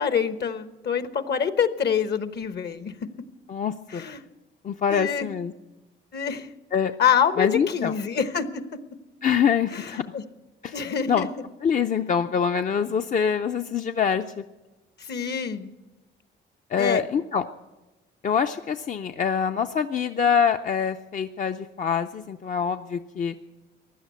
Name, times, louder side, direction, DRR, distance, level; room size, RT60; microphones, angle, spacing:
voice 1, 0.0-2.9 3.9-4.2 4.9-5.3 6.1-6.5 7.0-8.4 9.7-10.2 10.7-11.3 15.0-15.7 16.8-17.0, left 7 dB, 55° left, 11 dB, 1.1 m, -26 dB
voice 2, 3.5-4.0 4.6-5.5 6.7-6.9 7.4-7.9 9.2-10.0 10.6-11.3 11.6-14.4 16.7-17.4 18.2-23.4, left 7 dB, 40° left, 7 dB, 0.6 m, -25 dB
16.0 x 11.0 x 8.2 m, 1.1 s
cardioid pair, 90°, 20 cm